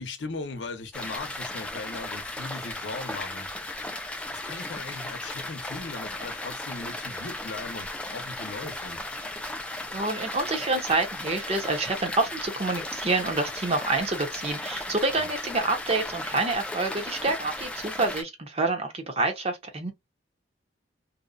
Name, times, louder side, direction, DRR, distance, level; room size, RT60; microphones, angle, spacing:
voice 1, 0.0-3.5 4.3-9.0 15.1-15.3, left 3 dB, 75° left, 0.7 m, -38 dB
sound 1, 0.9-18.2, left 1 dB, 5° left, 0.3 m, -36 dB
voice 2, 9.9-19.9, right 3 dB, 35° right, 0.7 m, -27 dB
2.7 x 2.1 x 2.4 m
head